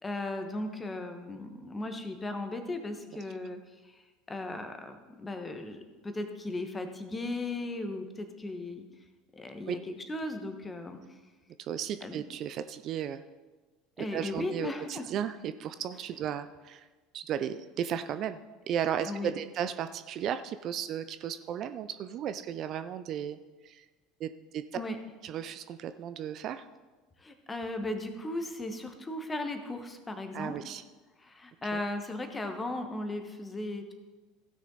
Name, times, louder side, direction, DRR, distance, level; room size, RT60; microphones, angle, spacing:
voice 1, 0.0-4.0 4.3-8.8 9.3-11.0 12.0-12.2 14.0-15.1 19.0-19.3 24.7-25.0 27.2-30.5 31.2-33.9, left 2 dB, 20° left, 6 dB, 1.4 m, -37 dB
voice 2, 11.6-13.2 14.0-16.9 17.1-18.4 18.7-23.4 23.6-23.8 24.2-24.6 25.2-26.7 30.3-30.8 31.7-31.8, right 9 dB, 45° right, 11 dB, 0.4 m, -35 dB
16.0 x 6.3 x 4.1 m, 1.3 s
figure-of-eight pair, 70°, 0 cm